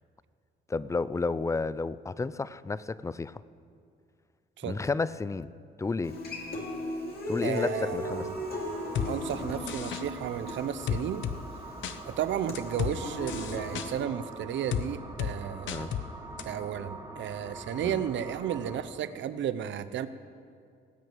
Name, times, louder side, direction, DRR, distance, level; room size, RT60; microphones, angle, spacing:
voice 1, 0.7-3.4 4.6-5.5 5.8-6.2 7.3-8.3 15.7-16.0 17.8-18.0, left 3 dB, 15° left, 17 dB, 0.4 m, -31 dB
Human voice / Acoustic guitar, 6.0-14.0, left 2 dB, 50° left, 2.6 m, -37 dB
voice 2, 7.4-8.3 9.0-11.3 12.0-16.0 16.4-20.1, right 9 dB, 70° right, 13 dB, 0.7 m, -33 dB
sound 1, 8.0-18.8, right 2 dB, 20° right, 2.2 m, -44 dB
sound 2, 9.0-9.1 9.7-10.0 10.9-11.4 11.8-12.0 12.6-12.9 13.3-13.9 14.7-14.9 15.2-15.3 15.7-16.1 16.4-16.5, left 9 dB, 70° left, 0.7 m, -31 dB
18.0 x 6.5 x 9.1 m, 2.3 s
cardioid pair, 90°, 20 cm